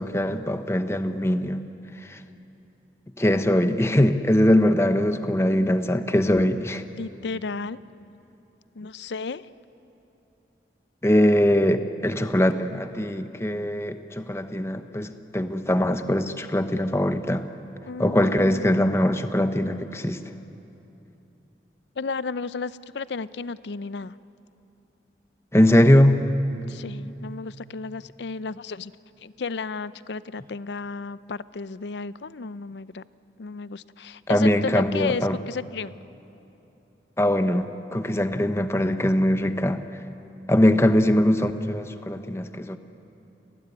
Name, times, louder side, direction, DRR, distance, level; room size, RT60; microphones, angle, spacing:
voice 1, 0.0-1.6 2.0-2.2 3.2-6.8 11.0-17.5 18.0-20.2 25.5-26.3 34.3-35.4 37.2-39.8 40.5-42.8, left 1 dB, 15° left, 9 dB, 0.9 m, -21 dB
voice 2, 7.0-7.8 8.8-9.4 17.9-18.9 22.0-24.1 26.7-28.9 29.2-33.0 33.4-36.0, left 4 dB, 80° left, 16 dB, 0.6 m, -33 dB
29.0 x 19.5 x 9.6 m, 3.0 s
head